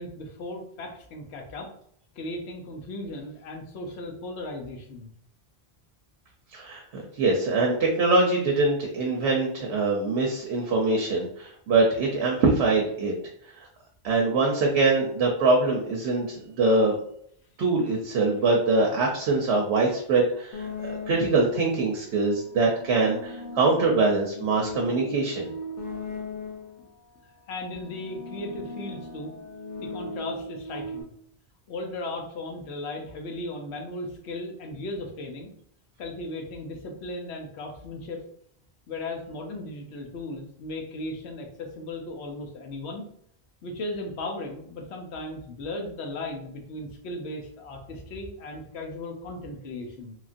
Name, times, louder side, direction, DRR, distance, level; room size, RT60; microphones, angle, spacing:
voice 1, 0.0-1.7 2.2-5.1 26.8-26.9 27.5-29.3 29.8-31.1 31.7-35.5 36.0-38.2 38.9-43.0 43.6-50.2, left 2 dB, 85° left, 2 dB, 0.9 m, -36 dB
voice 2, 6.5-13.1 13.6-13.7 14.0-17.0 17.6-25.5, right 3 dB, 85° right, 0 dB, 0.9 m, -23 dB
sound 1, 20.5-21.6 22.4-26.9 27.6-31.0, left 2 dB, 65° left, 0.8 m, -38 dB
3.1 x 2.4 x 2.5 m, 0.67 s
omnidirectional pair, 1.1 m